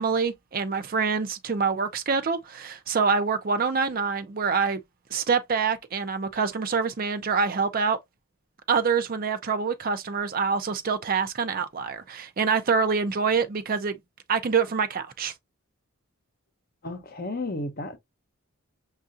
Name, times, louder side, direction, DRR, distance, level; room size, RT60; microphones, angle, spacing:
voice 1, 0.0-4.8 5.1-8.0 8.7-14.0 14.3-15.3, right 5 dB, 40° right, 0.4 m, -26 dB
voice 2, 16.8-18.0, left 2 dB, 45° left, 0.7 m, -33 dB
6.4 x 2.4 x 2.6 m
head